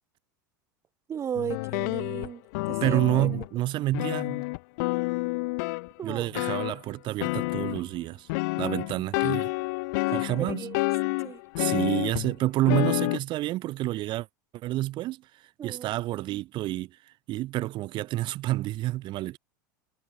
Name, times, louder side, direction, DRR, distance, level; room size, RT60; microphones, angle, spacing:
voice 1, 1.1-2.4 2.7-3.3 6.0-6.3 10.1-10.8 11.2-11.4 15.6-15.9, right 8 dB, 25° right, 0.5 m, -35 dB
sound 1, 1.3-3.6 3.9-6.8 7.2-8.0 8.3-12.3 12.7-13.2, left 27 dB, 65° left, 1.8 m, -29 dB
voice 2, 2.8-4.4 6.0-8.3 8.6-9.5 10.1-10.7 11.6-14.3 14.5-15.2 15.6-17.0 17.3-19.4, right 16 dB, 50° right, 1.4 m, -29 dB
hypercardioid pair, 85°, 11 cm